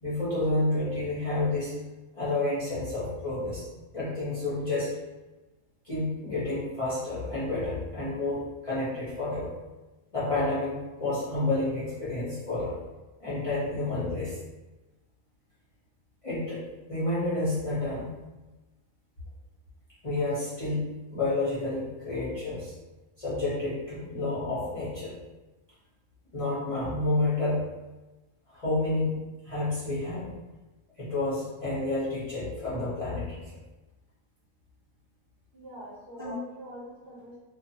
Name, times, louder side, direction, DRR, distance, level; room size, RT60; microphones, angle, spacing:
voice 1, 0.0-1.7 2.1-3.7 3.9-4.9 5.8-9.5 10.1-12.8 13.2-14.4 16.2-16.6 16.9-18.1 20.0-20.8 21.1-22.7 23.2-25.1 26.3-27.6 28.5-30.3 31.0-33.4 36.2-36.3, left 2 dB, 30° left, -11 dB, 0.9 m, -30 dB
voice 2, 35.5-37.4, right 1 dB, 55° right, -7 dB, 0.9 m, -44 dB
2.5 x 2.4 x 2.7 m, 1.1 s
omnidirectional pair, 1.3 m